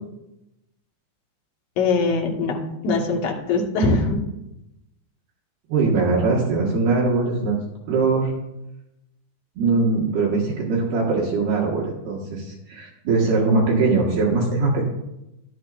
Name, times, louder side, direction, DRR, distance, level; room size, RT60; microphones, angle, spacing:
voice 1, 1.8-2.6 2.8-4.2, left 3 dB, 65° left, -1 dB, 1.6 m, -21 dB
voice 2, 5.7-7.5 7.9-8.3 9.6-14.8, right 3 dB, 65° right, -4 dB, 3.3 m, -21 dB
14.0 x 12.0 x 2.5 m, 0.90 s
omnidirectional pair, 5.3 m